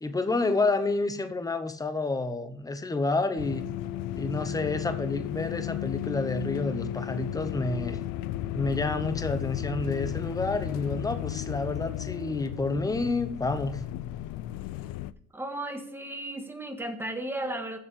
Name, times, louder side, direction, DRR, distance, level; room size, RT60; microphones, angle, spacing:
voice 1, 0.0-3.7 4.1-8.0 8.5-13.8, left 3 dB, 10° left, 10 dB, 0.9 m, -29 dB
sound 1, 3.4-15.1, left 13 dB, 80° left, 0.6 m, -34 dB
voice 2, 15.3-17.8, right 1 dB, 5° right, 4 dB, 1.7 m, -34 dB
7.6 x 7.2 x 8.3 m, 0.64 s
cardioid pair, 115°, 34 cm